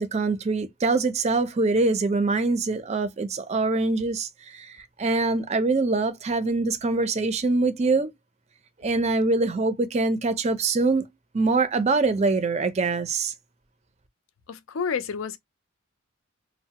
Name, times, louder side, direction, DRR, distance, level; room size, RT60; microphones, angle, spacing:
voice 1, 0.0-8.1 8.8-11.1 11.3-13.3, right 3 dB, 35° right, 0.4 m, -24 dB
voice 2, 14.5-15.4, left 6 dB, 75° left, 0.5 m, -29 dB
3.0 x 2.1 x 2.8 m
head